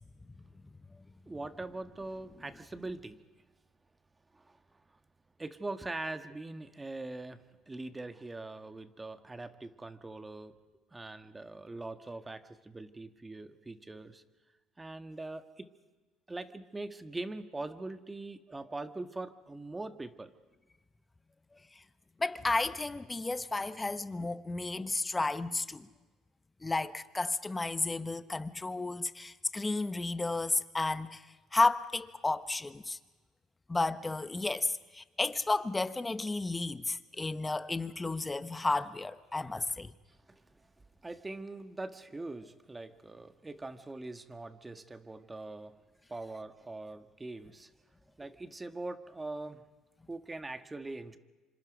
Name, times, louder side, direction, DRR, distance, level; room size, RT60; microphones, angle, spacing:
voice 1, 1.3-3.2 4.3-4.6 5.4-10.6 10.9-14.2 14.8-15.7 16.3-20.3 39.5-39.6 40.1-40.4 41.0-45.8 46.1-47.7 48.2-49.6 50.1-51.2, right 2 dB, 15° right, 1.6 m, -42 dB
voice 2, 22.2-25.9 26.6-31.2 31.5-33.0 33.7-39.9, left 3 dB, 15° left, 1.1 m, -32 dB
26.5 x 26.0 x 5.2 m
supercardioid pair, 85°, 0 cm